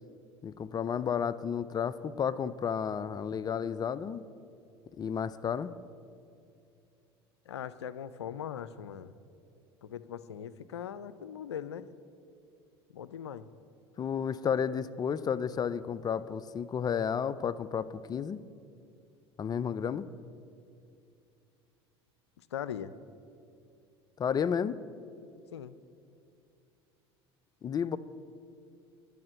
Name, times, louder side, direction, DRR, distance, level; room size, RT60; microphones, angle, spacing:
voice 1, 0.4-4.2 5.0-5.7 14.0-18.4 19.4-20.1 24.2-24.8 27.6-28.0, left 7 dB, 30° left, 16 dB, 0.4 m, -32 dB
voice 2, 7.5-9.1 9.8-11.9 12.9-13.5 22.4-22.9 25.5-25.8, left 9 dB, 90° left, 15 dB, 0.4 m, -40 dB
10.5 x 6.3 x 7.9 m, 2.5 s
hypercardioid pair, 75°, 14 cm